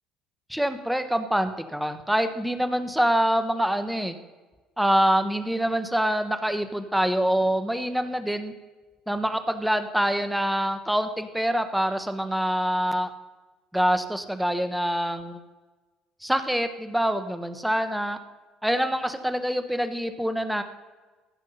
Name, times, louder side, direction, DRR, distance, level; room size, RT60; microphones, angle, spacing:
voice 1, 0.5-4.1 4.8-8.5 9.1-13.1 13.7-15.4 16.2-18.2 18.6-20.6, equal, 5° right, 8 dB, 1.2 m, -25 dB
15.5 x 6.0 x 5.8 m, 1.3 s
hypercardioid pair, 60°, 0 cm